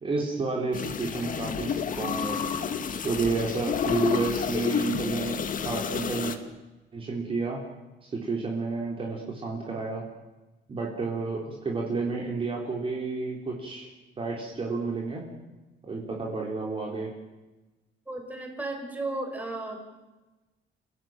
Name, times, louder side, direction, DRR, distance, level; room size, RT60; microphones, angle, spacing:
voice 1, 0.0-2.4 3.0-6.4 6.9-7.6 8.0-10.0 10.7-13.9 14.2-15.2 15.8-17.1, right 4 dB, 30° right, -1 dB, 4.1 m, -31 dB
sound 1, 0.7-6.4, left 7 dB, 45° left, 2.0 m, -30 dB
voice 2, 18.1-19.8, right 2 dB, 10° right, 2 dB, 5.4 m, -34 dB
30.0 x 16.5 x 9.1 m, 1.1 s
cardioid pair, 155°, 19 cm